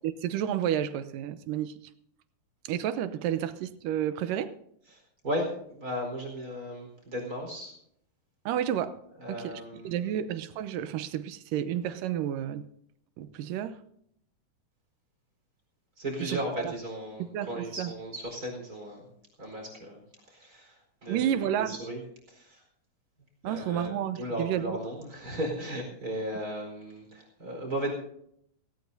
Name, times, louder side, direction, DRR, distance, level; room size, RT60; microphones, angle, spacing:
voice 1, 0.0-1.8 2.6-4.6 8.5-9.0 9.3-12.7 13.2-13.8 16.2-16.7 17.3-17.9 21.1-21.8 23.4-24.8, right 10 dB, 85° right, 2.4 m, -31 dB
voice 2, 4.9-7.7 9.2-10.1 16.0-19.0 19.4-20.0 20.3-22.0 22.3-22.6 23.4-27.9, equal, 25° right, 4.7 m, -36 dB
18.0 x 18.0 x 2.7 m
omnidirectional pair, 3.9 m